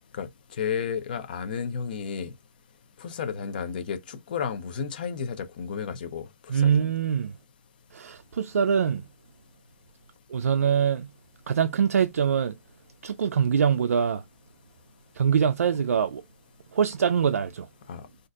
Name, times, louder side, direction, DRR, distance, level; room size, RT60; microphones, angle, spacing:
voice 1, 0.6-2.3 3.0-6.8 17.9-18.0, left 6 dB, 35° left, 0.5 m, -32 dB
voice 2, 6.5-7.3 7.9-9.0 10.3-11.1 11.5-12.5 13.0-14.2 15.2-16.2 16.7-17.7, right 7 dB, 75° right, 0.4 m, -23 dB
3.8 x 2.5 x 2.3 m
hypercardioid pair, 170°, 8 cm